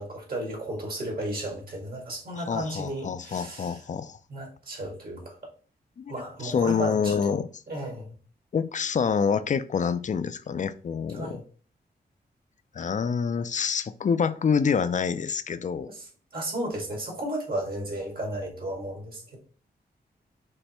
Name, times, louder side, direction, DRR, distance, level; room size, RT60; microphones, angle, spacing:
voice 1, 0.0-3.8 4.3-5.4 6.1-7.3 7.7-8.1 11.1-11.4 15.9-16.0 16.3-19.4, right 1 dB, 60° right, 0 dB, 2.1 m, -34 dB
voice 2, 2.3-4.2 6.0-7.5 8.5-11.4 12.7-15.9, left 6 dB, 45° left, 13 dB, 0.4 m, -27 dB
5.4 x 3.2 x 3.0 m, 0.40 s
wide cardioid pair, 95°, 17 cm